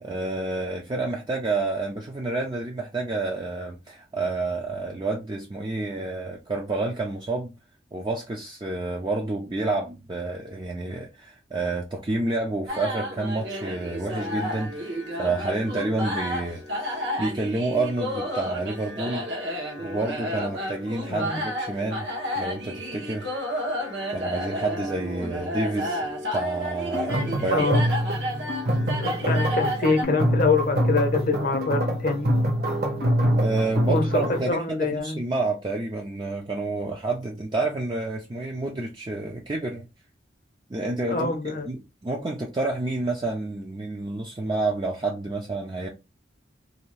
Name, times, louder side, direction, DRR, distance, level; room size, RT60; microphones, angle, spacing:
voice 1, 0.0-7.5 7.9-19.3 19.8-22.1 22.4-23.3 24.1-27.9 33.4-39.8 40.7-45.9, right 2 dB, 25° right, 0.4 m, -29 dB
sound 1, 12.7-30.0, equal, 70° right, 0.9 m, -31 dB
voice 2, 21.1-21.4 25.2-25.3 27.4-27.8 28.9-32.3 33.9-35.2 41.1-41.7, left 3 dB, 45° left, 0.6 m, -25 dB
sound 2, 26.9-34.5, equal, 55° right, 1.0 m, -25 dB
2.6 x 2.3 x 3.1 m
head